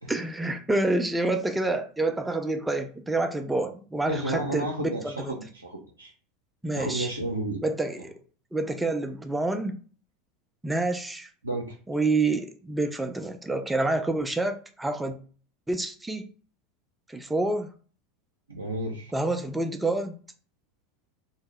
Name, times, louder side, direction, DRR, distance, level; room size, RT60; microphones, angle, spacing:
voice 1, 0.1-5.4 6.6-7.1 7.6-8.2 8.5-9.7 10.6-11.3 11.9-15.2 15.7-16.3 17.1-17.7 19.1-20.1, right 2 dB, 10° right, 6 dB, 0.4 m, -28 dB
voice 2, 4.1-6.1 6.7-7.6 11.4-11.8 18.5-19.1, right 1 dB, 90° right, -3 dB, 0.4 m, -32 dB
2.7 x 2.1 x 3.2 m, 0.40 s
figure-of-eight pair, 80°, 0 cm